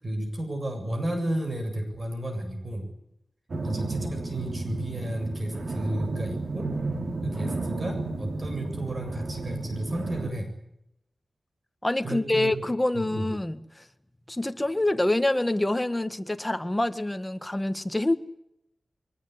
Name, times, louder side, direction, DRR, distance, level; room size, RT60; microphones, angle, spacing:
voice 1, 0.0-2.9 3.6-6.7 7.2-10.5 12.0-12.6 12.9-13.3, right 1 dB, 35° right, 5 dB, 7.8 m, -32 dB
sound 1, 3.5-10.3, right 3 dB, 65° right, 2.8 m, -32 dB
voice 2, 11.8-13.8 14.3-18.1, left 1 dB, 15° left, 9 dB, 1.7 m, -26 dB
23.5 x 20.5 x 9.7 m, 0.81 s
wide cardioid pair, 105°, 0 cm